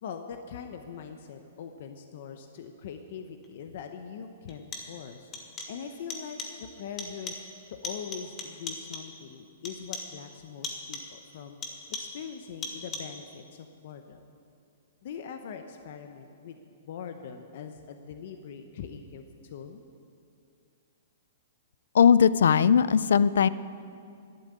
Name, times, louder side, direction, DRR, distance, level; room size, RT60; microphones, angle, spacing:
voice 1, 0.0-5.3 5.7-7.3 7.7-11.6 11.9-14.2 15.0-19.8, left 7 dB, 50° left, 7 dB, 0.8 m, -42 dB
sound 1, 3.4-3.5 4.5-5.1 5.3-5.8 6.1-6.7 7.0-7.6 7.8-9.2 9.6-10.2 10.6-11.2 11.6-12.3 12.6-13.2, left 3 dB, 15° left, 1.4 m, -39 dB
voice 2, 21.9-23.5, left 7 dB, 80° left, 17 dB, 0.4 m, -19 dB
12.0 x 10.5 x 8.7 m, 2.4 s
hypercardioid pair, 165°, 0 cm